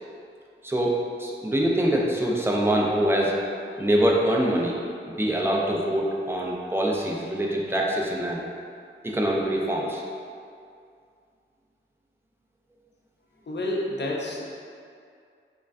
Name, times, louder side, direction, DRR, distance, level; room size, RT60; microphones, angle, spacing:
voice 1, 0.6-3.3 3.8-4.8 5.1-8.4 9.0-10.0, right 1 dB, 10° right, -3 dB, 0.4 m, -24 dB
voice 2, 13.4-14.4, left 1 dB, 60° left, -3 dB, 0.5 m, -29 dB
3.1 x 2.3 x 2.5 m, 2.3 s
wide cardioid pair, 55°, 21 cm